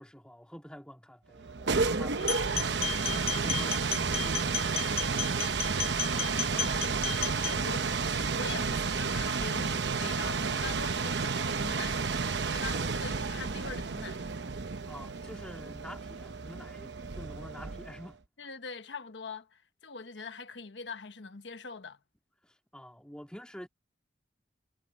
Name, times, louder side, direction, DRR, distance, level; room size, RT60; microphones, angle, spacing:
voice 1, 0.0-5.2 14.8-18.2 22.4-23.7, equal, 5° left, 1.9 m, -48 dB
sound 1, 1.4-18.1, right 4 dB, 70° right, 0.9 m, -31 dB
sound 2, 2.2-7.6, left 7 dB, 35° left, 1.0 m, -34 dB
voice 2, 6.1-14.3 18.4-22.0, left 4 dB, 80° left, 1.2 m, -43 dB
head